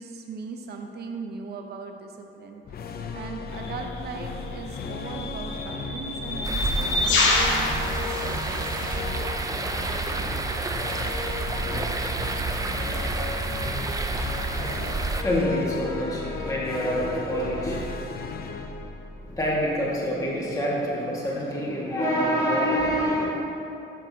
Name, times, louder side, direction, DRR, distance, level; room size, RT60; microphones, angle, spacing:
voice 1, 0.0-2.6 3.1-8.9, right 4 dB, 55° right, 3 dB, 0.7 m, -38 dB
sound 1, 2.6-20.1, left 4 dB, 50° left, 0.6 m, -35 dB
sound 2, 3.6-3.8 4.8-9.0, left 2 dB, 75° left, 1.4 m, -27 dB
sound 3, 6.4-15.2, right 3 dB, 15° right, 0.5 m, -29 dB
voice 2, 15.0-17.8 19.2-23.3, equal, 15° left, -6 dB, 1.8 m, -26 dB
12.0 x 5.9 x 2.8 m, 2.9 s
cardioid pair, 90°, 20 cm